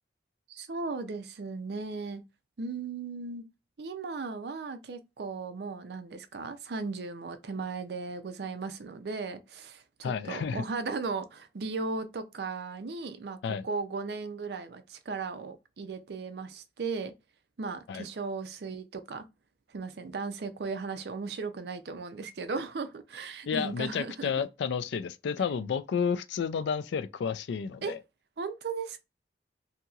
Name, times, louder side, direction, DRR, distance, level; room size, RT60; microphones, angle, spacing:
voice 1, 0.5-2.2 2.6-3.5 3.8-13.4 13.6-17.1 17.6-19.2 19.7-24.5 27.8-27.9 28.4-29.0, right 4 dB, 65° right, 0.5 m, -36 dB
voice 2, 10.0-10.6 13.4-13.6 17.9-18.1 23.5-28.0, left 6 dB, 75° left, 0.3 m, -31 dB
2.8 x 2.8 x 2.3 m
head